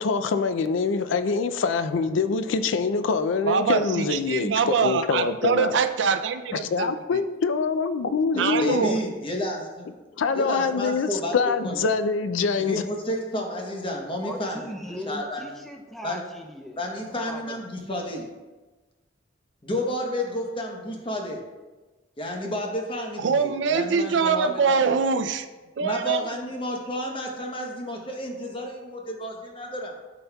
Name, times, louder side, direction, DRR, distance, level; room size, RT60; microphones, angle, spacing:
voice 1, 0.0-5.7 6.5-8.9 10.2-12.8, left 4 dB, 80° left, 11 dB, 0.4 m, -25 dB
voice 2, 3.5-6.9 8.4-9.0 23.2-25.5 25.8-26.2, right 5 dB, 65° right, 8 dB, 0.4 m, -24 dB
voice 3, 8.3-10.0 10.3-11.3 11.6-11.8 12.6-14.6 15.1-15.6 16.0-16.2 16.8-18.3 19.6-21.4 22.2-24.9 25.8-29.9, left 1 dB, 25° left, 1 dB, 0.9 m, -31 dB
voice 4, 14.2-17.6, left 1 dB, ahead, 2 dB, 0.5 m, -39 dB
12.0 x 4.2 x 2.3 m, 1.2 s
head